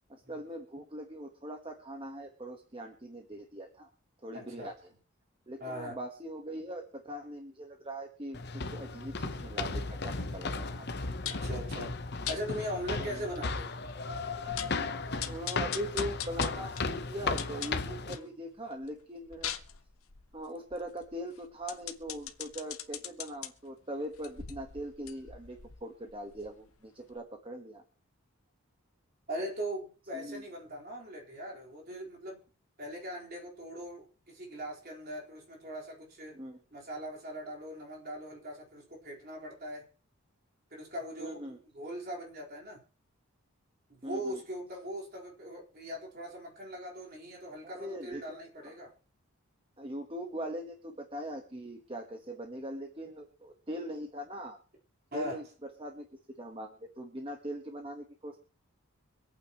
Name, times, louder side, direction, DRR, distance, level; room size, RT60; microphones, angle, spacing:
voice 1, 0.1-3.9 4.2-4.9 5.5-11.0 13.0-13.2 15.3-19.5 20.3-27.8 30.1-30.4 36.3-36.6 41.2-41.6 44.0-44.4 47.7-48.2 49.8-54.6 55.1-56.1 56.4-58.4, right 1 dB, 25° right, 1.3 m, -41 dB
voice 2, 4.3-4.7 5.6-6.0 11.2-11.9 12.3-13.7 29.3-32.4 32.8-36.4 36.7-39.9 40.7-41.4 41.7-42.8 43.9-48.9 55.1-55.4, equal, 40° right, 4.2 m, -40 dB
sound 1, 8.3-18.1, left 3 dB, 45° left, 0.9 m, -35 dB
sound 2, 11.3-11.5 12.3-12.4 13.0-13.1 13.4-13.5 13.9-14.0 14.3-14.8 15.2-18.3 18.7-23.5 24.1-26.8 27.1-27.2, left 10 dB, 70° left, 1.1 m, -41 dB
25.5 x 8.8 x 3.0 m
head